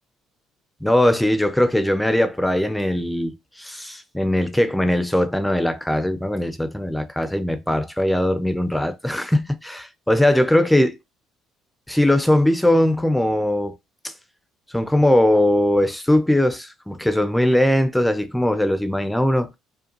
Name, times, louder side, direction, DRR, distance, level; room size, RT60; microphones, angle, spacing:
voice 1, 0.8-11.0 11.9-13.7 14.0-14.1 14.7-19.6, left 1 dB, 5° left, 0.5 m, -20 dB
5.0 x 2.2 x 2.9 m
cardioid pair, 105°, 0 cm